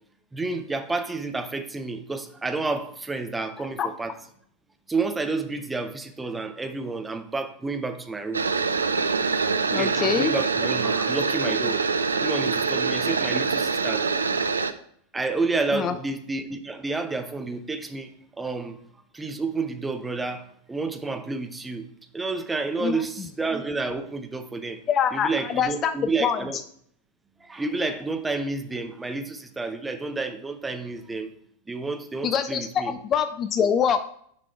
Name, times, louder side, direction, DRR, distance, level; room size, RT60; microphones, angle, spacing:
voice 1, 0.3-4.1 4.9-8.5 9.7-11.8 12.2-14.2 15.1-18.8 19.1-21.9 22.1-24.8 25.1-26.6 27.4-31.3 31.7-32.9, right 3 dB, 10° right, 0.7 m, -30 dB
sound 1, 8.3-14.7, right 5 dB, 75° right, 0.4 m, -24 dB
voice 2, 9.7-10.3 15.7-15.9 22.8-23.0 24.9-25.9 26.2-26.4 32.2-34.1, left 7 dB, 30° left, 0.4 m, -24 dB
6.8 x 5.1 x 4.4 m
figure-of-eight pair, 90°, 0 cm